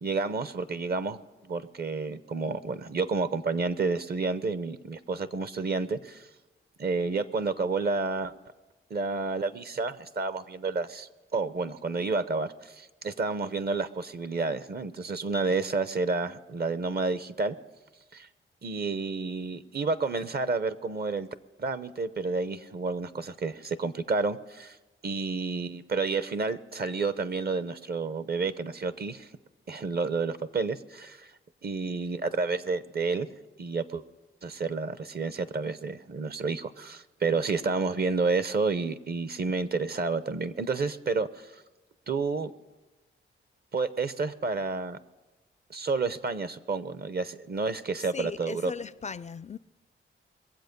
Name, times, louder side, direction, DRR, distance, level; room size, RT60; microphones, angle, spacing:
voice 1, 0.0-6.3 6.8-8.3 8.9-17.6 18.1-18.3 18.6-21.3 21.6-24.8 25.0-29.3 29.7-31.3 31.6-33.3 33.6-34.0 34.4-41.6 42.1-42.5 43.7-45.0 45.7-48.7, right 4 dB, 50° right, 0.8 m, -30 dB
voice 2, 48.1-49.6, left 5 dB, 35° left, 0.4 m, -38 dB
22.0 x 7.8 x 5.2 m
cardioid pair, 60°, 21 cm